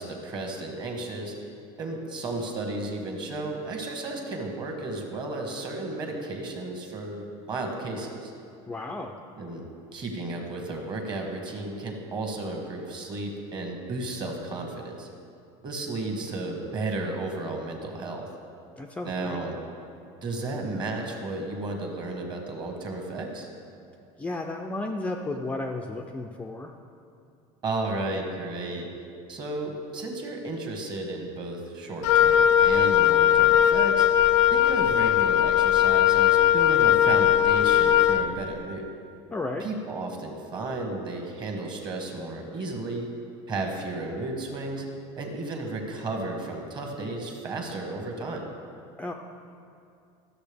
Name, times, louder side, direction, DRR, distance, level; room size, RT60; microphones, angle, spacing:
voice 1, 0.0-1.3 1.8-8.3 9.4-9.6 9.9-15.1 15.6-18.3 19.0-19.6 20.2-23.5 27.6-28.9 29.3-34.1 34.5-38.9 39.6-43.1 43.5-44.8 45.2-48.5, right 2 dB, 30° right, 2 dB, 1.3 m, -33 dB
voice 2, 8.7-9.2 18.8-19.4 24.2-26.7 39.3-39.7 49.0-49.1, left 2 dB, 10° left, 2 dB, 0.3 m, -33 dB
Wind instrument woodwind instrument, 32.0-38.3, left 11 dB, 90° left, 0.4 m, -19 dB
13.5 x 6.6 x 3.4 m, 2.4 s
cardioid pair, 150°, 15 cm